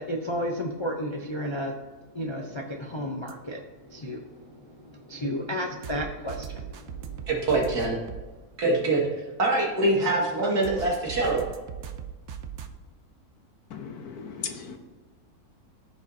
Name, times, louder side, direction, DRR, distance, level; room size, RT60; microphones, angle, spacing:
voice 1, 0.0-7.3, equal, 30° left, 1 dB, 0.5 m, -33 dB
sound 1, 3.3-3.4 5.8-8.2 10.6-12.7, right 8 dB, 60° right, 0.8 m, -38 dB
voice 2, 7.3-8.0 8.6-9.1 9.4-11.4, right 2 dB, 80° right, -3 dB, 2.7 m, -24 dB
voice 3, 13.7-14.8, left 6 dB, 75° left, 5 dB, 1.5 m, -37 dB
14.5 x 5.2 x 2.7 m, 1.3 s
omnidirectional pair, 1.7 m